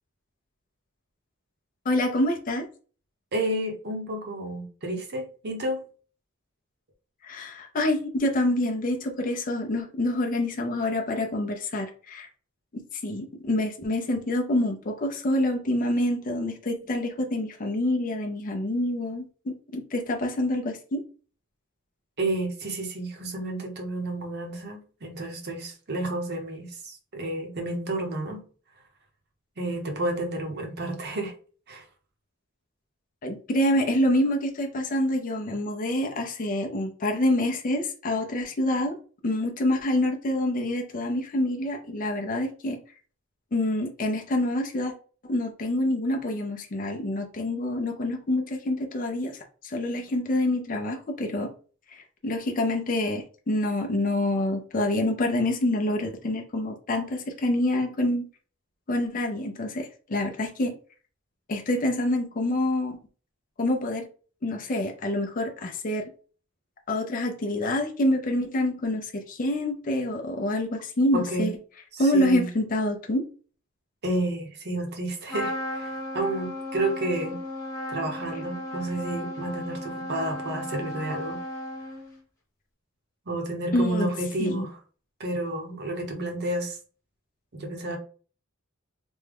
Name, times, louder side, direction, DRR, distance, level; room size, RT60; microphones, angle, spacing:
voice 1, 1.9-2.7 7.2-12.3 12.7-21.0 33.2-39.0 39.2-42.8 43.5-44.9 45.2-51.5 51.9-58.3 58.9-60.7 61.5-63.0 63.6-64.1 64.4-66.1 66.9-71.5 72.0-73.3 83.7-84.1 84.4-84.7, left 1 dB, 40° left, 2 dB, 0.5 m, -27 dB
voice 2, 3.3-5.8 22.2-28.4 29.6-31.3 31.7-31.8 71.1-71.5 72.0-72.5 74.0-77.4 77.9-81.4 83.3-84.8 85.2-86.8 87.5-88.0, right 1 dB, 50° right, 3 dB, 0.8 m, -30 dB
Trumpet, 75.3-82.2, left 1 dB, 15° left, 1.0 m, -35 dB
3.5 x 2.2 x 3.3 m, 0.40 s
head